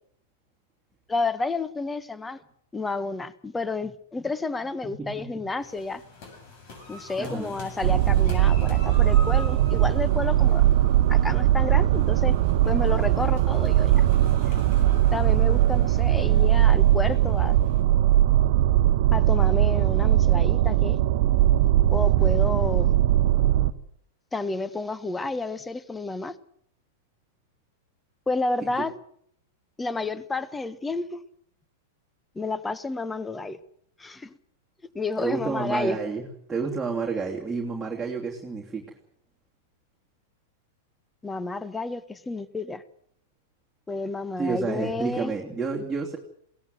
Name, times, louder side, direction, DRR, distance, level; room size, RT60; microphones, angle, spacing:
voice 1, 1.1-2.4 2.7-6.0 6.9-10.6 11.1-12.4 12.7-14.1 15.1-17.6 19.1-21.0 21.9-22.9 24.3-26.4 28.3-28.9 29.8-31.2 32.3-33.6 34.0-34.3 34.9-36.0 41.2-42.8 43.9-45.3, left 3 dB, 10° left, 16 dB, 1.2 m, -30 dB
sound 1, 5.6-17.8, left 2 dB, 50° left, 7.5 m, -44 dB
voice 2, 7.2-7.6 28.8-28.9 35.2-38.9 44.4-46.2, right 4 dB, 10° right, -2 dB, 3.0 m, -30 dB
sound 2, 7.8-23.7, right 13 dB, 55° right, 1.1 m, -20 dB
22.0 x 17.5 x 7.8 m, 0.67 s
hypercardioid pair, 100°, 0 cm